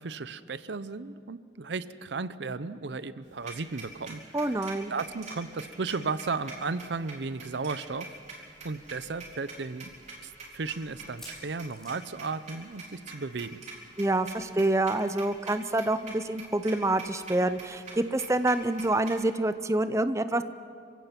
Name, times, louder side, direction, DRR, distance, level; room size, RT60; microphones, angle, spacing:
voice 1, 0.0-4.4 4.9-8.2 8.6-9.9 10.2-13.6, right 4 dB, 85° right, 15 dB, 0.7 m, -35 dB
sound 1, 3.2-19.3, right 3 dB, 40° right, 3.8 m, -45 dB
voice 2, 4.3-4.9 14.0-20.4, right 2 dB, 15° right, 11 dB, 0.5 m, -27 dB
sound 2, 11.2-13.1 13.4-13.6 13.8-13.9 15.4-15.5, left 1 dB, 5° left, 4.4 m, -52 dB
27.0 x 16.5 x 5.9 m, 2.4 s
head